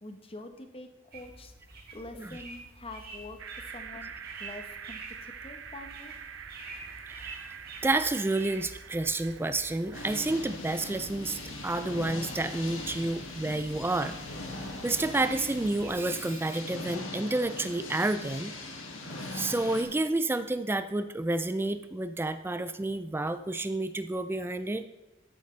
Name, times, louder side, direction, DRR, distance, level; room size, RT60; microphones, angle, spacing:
voice 1, 0.0-4.1 4.4-6.1, left 2 dB, 30° left, 6 dB, 0.9 m, -46 dB
sound 1, 1.1-15.9, right 2 dB, 50° right, 1.8 m, -48 dB
sound 2, 3.4-11.6, right 7 dB, 75° right, 0.7 m, -46 dB
voice 2, 7.1-7.5 7.8-14.2 14.8-18.5 19.2-24.8, right 2 dB, 10° right, 11 dB, 0.3 m, -30 dB
sound 3, 9.9-19.8, left 2 dB, 90° left, 1.7 m, -40 dB
13.5 x 8.3 x 3.2 m, 1.1 s
head